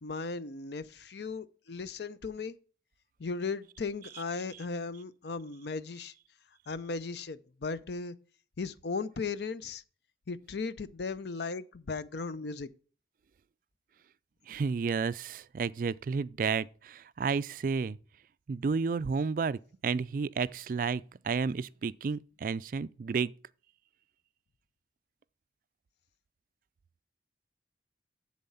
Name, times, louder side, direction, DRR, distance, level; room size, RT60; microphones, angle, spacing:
voice 1, 0.0-2.6 3.2-6.1 6.7-8.1 8.6-9.8 10.3-12.7, left 4 dB, 65° left, 0.6 m, -37 dB
voice 2, 14.5-18.0 18.5-23.3, right 5 dB, 45° right, 0.3 m, -31 dB
7.6 x 7.2 x 5.5 m
head